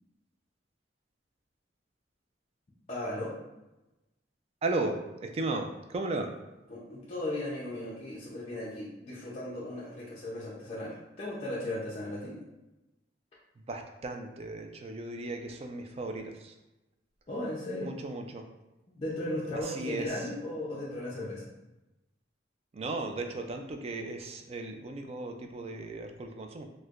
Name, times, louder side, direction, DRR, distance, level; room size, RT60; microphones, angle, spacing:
voice 1, 2.9-3.4 6.7-12.4 17.3-17.9 19.0-21.5, left 1 dB, 35° left, -8 dB, 0.6 m, -36 dB
voice 2, 4.6-6.3 13.7-16.5 17.8-18.4 19.6-20.3 22.7-26.7, right 2 dB, 35° right, 4 dB, 0.3 m, -36 dB
4.3 x 2.1 x 2.4 m, 0.98 s
head